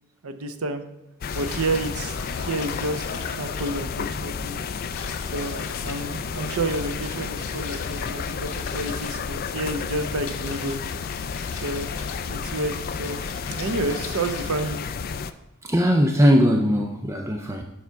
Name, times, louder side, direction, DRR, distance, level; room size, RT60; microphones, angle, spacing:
voice 1, 0.2-0.8 1.3-3.0 3.3-4.6 5.3-10.8 11.5-11.9 12.3-13.2 13.5-14.8, right 2 dB, 75° right, 8 dB, 0.7 m, -30 dB
sound 1, 1.2-15.3, left 6 dB, 45° left, 0.4 m, -31 dB
sound 2, 1.3-14.8, left 4 dB, 90° left, 1.6 m, -41 dB
voice 2, 15.6-17.6, equal, 15° right, 3 dB, 0.5 m, -19 dB
7.3 x 5.7 x 4.6 m, 1.0 s
head